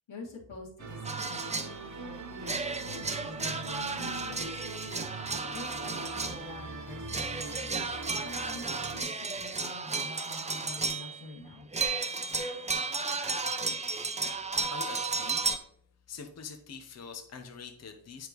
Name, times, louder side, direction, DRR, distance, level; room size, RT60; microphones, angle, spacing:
voice 1, 0.1-4.6 5.5-11.7, left 2 dB, 85° left, -3 dB, 2.2 m, -47 dB
sound 1, 0.8-9.0, right 3 dB, 40° right, 0.8 m, -42 dB
sound 2, 1.0-1.8 2.4-6.5 7.1-11.3 11.7-15.6, right 4 dB, 15° right, 0.4 m, -33 dB
voice 2, 14.7-15.4 16.1-18.3, left 5 dB, 35° left, 5 dB, 0.7 m, -44 dB
8.7 x 5.1 x 3.0 m, 0.69 s
wide cardioid pair, 115°, 46 cm